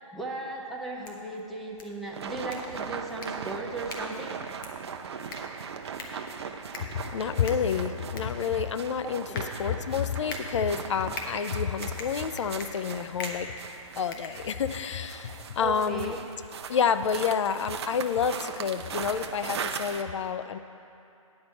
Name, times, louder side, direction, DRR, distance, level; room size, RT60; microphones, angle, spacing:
voice 1, 0.1-4.4 6.4-6.5 9.0-9.5 15.6-16.2, right 2 dB, ahead, -4 dB, 0.3 m, -36 dB
sound 1, 0.8-14.9, left 3 dB, 35° left, 1.2 m, -44 dB
sound 2, 2.1-20.0, right 6 dB, 50° right, 0.6 m, -39 dB
voice 2, 6.9-13.5 14.0-16.2 16.7-20.6, left 7 dB, 55° left, 11 dB, 0.5 m, -29 dB
9.5 x 5.3 x 7.5 m, 2.7 s
hypercardioid pair, 145°, 18 cm